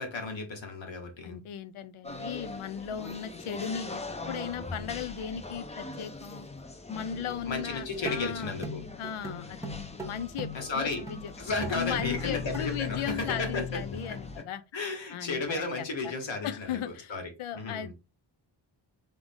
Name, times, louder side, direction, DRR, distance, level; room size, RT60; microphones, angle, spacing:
voice 1, 0.0-1.4 7.4-8.8 10.5-11.0 11.4-13.8 14.1-14.2 14.7-17.9, left 3 dB, 65° left, 1.6 m, -34 dB
voice 2, 1.2-6.5 6.9-9.7 10.0-11.3 11.7-14.6 15.1-16.1 16.4-17.9, left 9 dB, 85° left, 0.6 m, -37 dB
sound 1, 2.0-14.4, left 3 dB, 15° left, 0.5 m, -40 dB
sound 2, 7.3-7.4 8.1-10.8 11.1-11.4 11.6-13.0 13.3-13.4, equal, 5° right, 1.0 m, -41 dB
3.7 x 3.5 x 3.6 m
wide cardioid pair, 115°, 48 cm